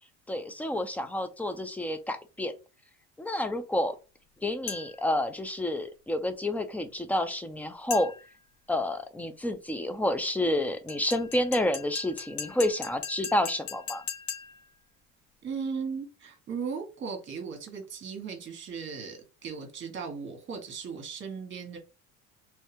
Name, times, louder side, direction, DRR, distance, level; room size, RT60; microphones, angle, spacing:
voice 1, 0.3-2.5 3.2-3.9 4.4-8.1 8.7-14.0, left 1 dB, 5° left, 0.5 m, -29 dB
sound 1, 4.7-5.1 7.9-8.4 10.9-14.7, left 8 dB, 75° left, 0.9 m, -40 dB
voice 2, 15.4-21.8, right 5 dB, 35° right, 1.4 m, -37 dB
3.2 x 2.8 x 3.5 m
supercardioid pair, 105°, 33 cm